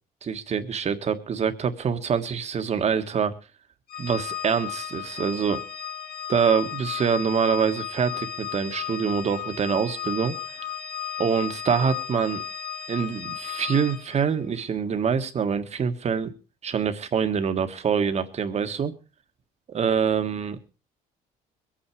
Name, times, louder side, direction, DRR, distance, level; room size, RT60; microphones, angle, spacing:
voice 1, 0.2-3.3 4.0-5.6 6.3-10.4 11.2-12.4 12.9-16.3 16.6-18.9 19.7-20.6, right 6 dB, 40° right, 9 dB, 1.7 m, -25 dB
Organ, 3.9-14.3, left 9 dB, 65° left, 1.7 m, -34 dB
22.0 x 8.9 x 4.8 m, 0.34 s
cardioid pair, 110°, 17 cm